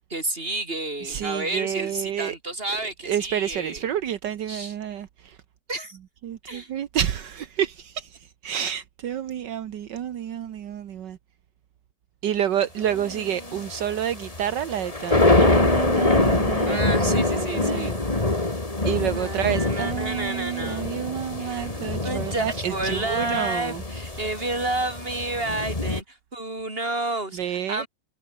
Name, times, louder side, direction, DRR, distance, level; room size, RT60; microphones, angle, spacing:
voice 1, 0.1-3.8 4.5-4.7 5.7-6.0 6.4-6.7 12.9-13.6 16.6-18.0 19.1-21.1 21.4-27.9, right 2 dB, 30° right, 5.3 m, -31 dB
voice 2, 1.0-2.4 3.0-5.4 6.2-11.2 12.2-18.4 18.8-23.8 27.3-27.8, right 10 dB, 70° right, 1.7 m, -29 dB
sound 1, 12.9-26.0, left 2 dB, 20° left, 2.5 m, -25 dB
omnidirectional pair, 2.0 m